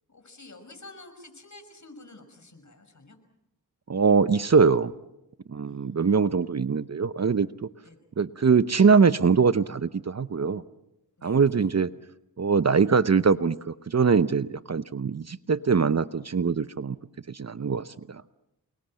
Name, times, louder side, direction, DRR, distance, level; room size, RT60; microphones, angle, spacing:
voice 1, 0.1-3.2 5.6-6.0 7.8-8.0 11.2-11.5, left 2 dB, 45° left, 7 dB, 6.0 m, -49 dB
voice 2, 3.9-4.9 5.5-7.7 8.2-10.6 11.2-11.9 12.4-17.0 17.3-18.2, right 5 dB, 40° right, 14 dB, 0.9 m, -22 dB
28.5 x 21.0 x 7.7 m, 0.87 s
cardioid pair, 50°, 39 cm